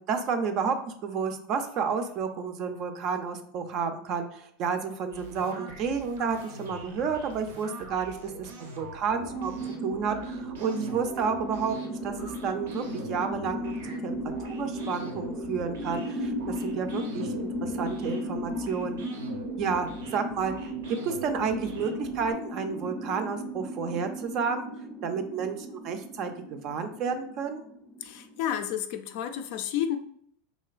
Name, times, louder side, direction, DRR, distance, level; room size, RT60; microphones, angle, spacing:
voice 1, 0.0-9.5 9.8-13.7 14.0-14.2 14.5-19.0 19.6-24.7 25.0-27.6, right 6 dB, 45° right, 7 dB, 0.4 m, -31 dB
sound 1, 5.1-22.3, right 2 dB, 85° right, 0.7 m, -44 dB
sound 2, 9.1-28.7, equal, 5° left, 0.6 m, -36 dB
voice 2, 28.0-30.0, left 9 dB, 60° left, 8 dB, 0.4 m, -31 dB
3.1 x 2.8 x 2.4 m, 0.65 s
hypercardioid pair, 110°, 0 cm